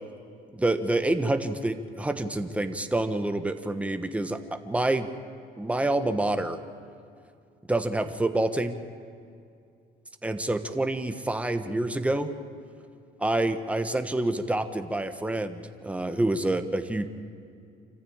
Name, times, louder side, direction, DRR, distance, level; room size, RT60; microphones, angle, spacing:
voice 1, 0.5-5.1 5.6-6.6 7.7-8.8 10.2-12.3 13.2-17.1, right 2 dB, 10° right, 8 dB, 1.3 m, -27 dB
26.5 x 15.0 x 8.9 m, 2.4 s
cardioid pair, 110°, 17 cm